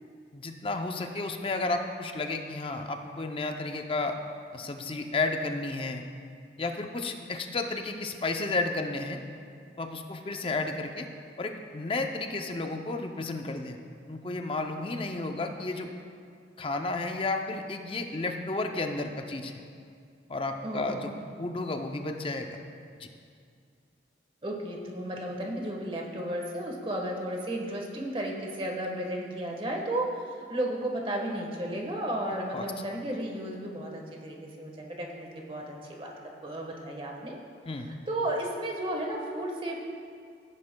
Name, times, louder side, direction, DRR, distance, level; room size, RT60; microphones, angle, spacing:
voice 1, 0.3-4.2 4.5-6.0 6.6-9.2 9.8-11.1 11.4-13.8 14.1-15.9 16.6-19.6 20.3-21.1 21.4-22.6 23.0-23.1 32.5-32.6 37.7-37.9, left 3 dB, 30° left, 5 dB, 0.5 m, -32 dB
voice 2, 20.6-21.3 24.4-37.3 37.8-39.9, right 1 dB, 30° right, 0 dB, 1.3 m, -34 dB
15.5 x 9.8 x 2.2 m, 2.3 s
head